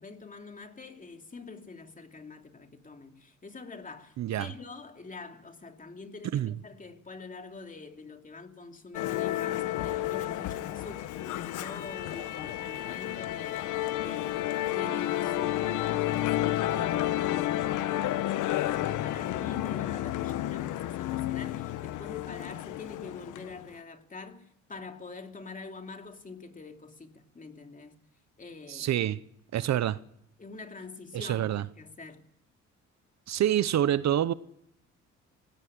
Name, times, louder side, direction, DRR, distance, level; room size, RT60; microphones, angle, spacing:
voice 1, 0.0-13.7 14.0-28.0 28.4-29.0 30.4-32.2, left 3 dB, 25° left, 2.9 m, -45 dB
voice 2, 4.2-4.5 6.3-6.5 28.7-29.2 29.5-30.0 31.1-31.6 33.3-34.3, right 11 dB, 65° right, 0.8 m, -27 dB
Musical instrument, 8.9-23.6, left 14 dB, 85° left, 1.0 m, -31 dB
18.5 x 17.5 x 9.7 m
cardioid pair, 90°, 30 cm